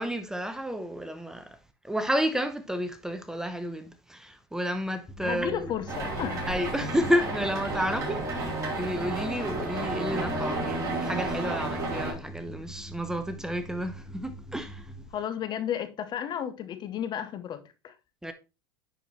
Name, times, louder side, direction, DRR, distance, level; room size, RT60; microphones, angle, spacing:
voice 1, 0.0-1.6 1.8-5.7 6.5-14.9 18.2-18.3, equal, 5° right, 0.8 m, -31 dB
sound 1, 5.1-15.1, right 1 dB, 20° left, 1.2 m, -44 dB
voice 2, 5.2-6.5 15.1-17.9, left 9 dB, 35° left, 0.8 m, -33 dB
sound 2, 5.9-12.1, right 2 dB, 25° right, 4.2 m, -32 dB
9.9 x 4.6 x 3.1 m
supercardioid pair, 120°, 13 cm